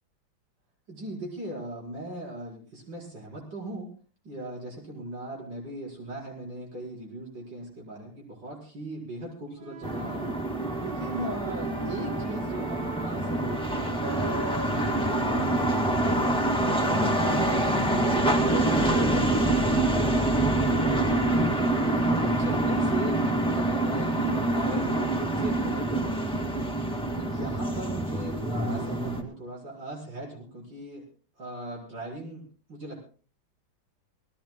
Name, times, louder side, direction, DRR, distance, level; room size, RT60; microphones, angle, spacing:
voice 1, 0.9-3.9 4.2-10.2 10.8-14.9 15.2-17.1 17.4-21.8 22.2-26.6 27.1-31.1 31.4-33.0, right 1 dB, 60° right, -3 dB, 5.6 m, -39 dB
Wind instrument woodwind instrument, 9.6-16.0 16.7-22.7, right 4 dB, 90° right, 2.4 m, -41 dB
sound 1, 9.8-29.2, right 1 dB, 5° left, 2.1 m, -26 dB
27.0 x 18.5 x 2.3 m, 0.38 s
omnidirectional pair, 2.2 m